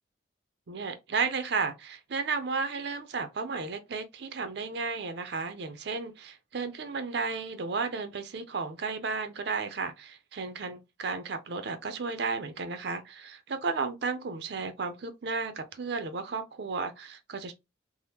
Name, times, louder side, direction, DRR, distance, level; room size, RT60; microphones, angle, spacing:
voice 1, 0.7-17.5, right 4 dB, 55° right, 0.5 m, -33 dB
3.4 x 2.0 x 2.8 m
head